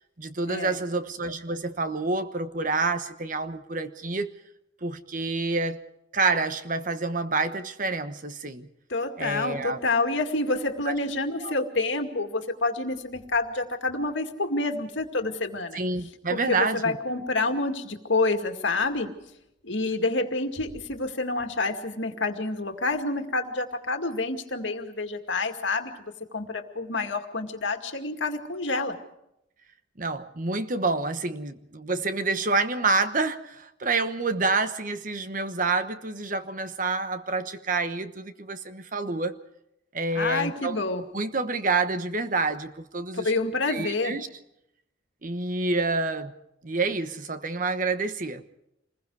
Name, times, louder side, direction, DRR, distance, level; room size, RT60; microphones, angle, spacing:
voice 1, 0.2-4.3 4.8-5.8 6.1-8.7 9.2-9.8 10.9-11.0 11.4-11.5 15.7-17.0 30.0-39.4 39.9-40.8 41.1-43.3 43.7-44.3 45.2-46.3 46.6-48.4, right 3 dB, 45° right, 10 dB, 1.1 m, -28 dB
voice 2, 8.9-15.8 16.3-19.1 19.6-28.9 40.2-41.0 43.2-44.1, left 3 dB, 75° left, 5 dB, 2.2 m, -28 dB
27.0 x 21.0 x 4.8 m, 0.81 s
head